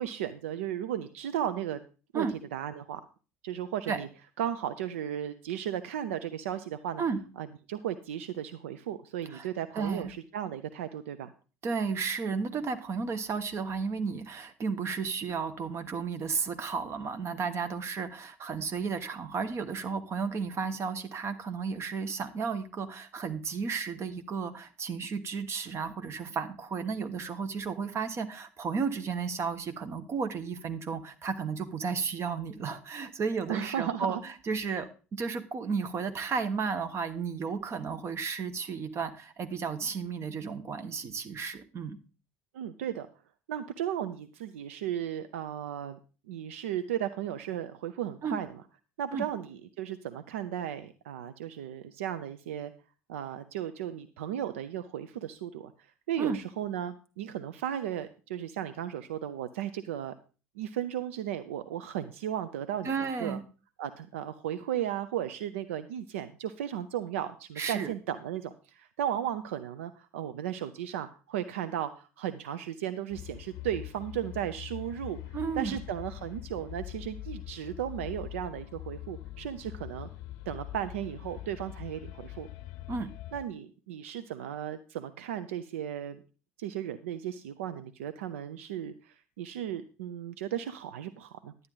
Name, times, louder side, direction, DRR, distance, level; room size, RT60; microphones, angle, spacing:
voice 1, 0.0-1.8 2.1-2.3 2.5-3.0 3.4-4.1 4.4-7.0 7.4-11.3 33.5-34.2 34.7-34.8 42.5-43.1 43.5-46.0 46.3-48.6 49.0-52.7 53.1-55.7 56.1-60.1 60.6-63.4 63.8-75.2 75.6-80.1 80.5-82.5 83.3-86.2 86.6-91.5, right 10 dB, 75° right, 12 dB, 0.5 m, -35 dB
voice 2, 9.7-10.1 11.6-42.0 48.2-48.4 49.1-49.3 56.2-56.4 62.8-63.4 67.6-67.9 75.3-75.8 82.9-83.1, right 5 dB, 40° right, 10 dB, 1.2 m, -33 dB
sound 1, 73.1-83.4, left 15 dB, 60° left, 0.6 m, -43 dB
11.0 x 9.2 x 3.9 m, 0.35 s
figure-of-eight pair, 65°, 7 cm